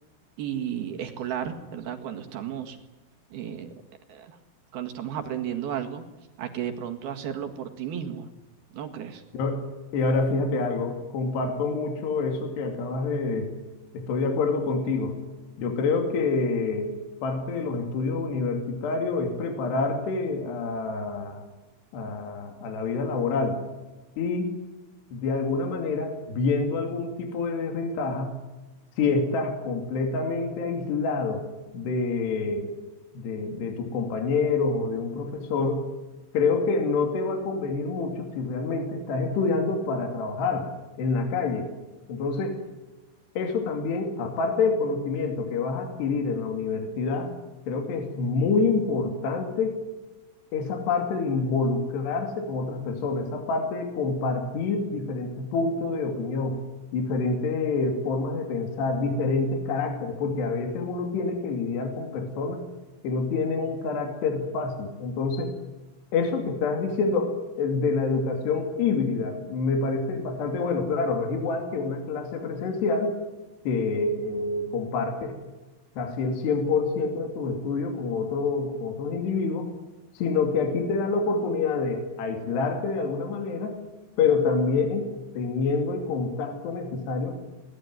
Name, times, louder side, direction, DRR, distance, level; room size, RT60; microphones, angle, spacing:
voice 1, 0.4-2.8 3.3-3.7 4.1-4.4 4.7-6.0 6.4-8.3 8.7-9.2, right 9 dB, 60° right, 7 dB, 3.2 m, -33 dB
voice 2, 9.3-9.6 9.9-13.5 13.9-15.2 15.6-21.4 21.9-23.6 24.2-24.5 25.1-28.4 29.0-31.4 31.7-32.7 33.1-35.9 36.3-40.7 41.0-41.7 42.1-42.6 43.4-47.3 47.7-49.8 50.5-56.6 56.9-62.6 63.0-65.5 66.1-73.2 73.7-75.4 76.0-79.7 80.1-83.8 84.2-85.1 85.3-87.4, left 4 dB, 60° left, 4 dB, 4.5 m, -27 dB
22.5 x 19.0 x 9.6 m, 1.1 s
omnidirectional pair, 5.7 m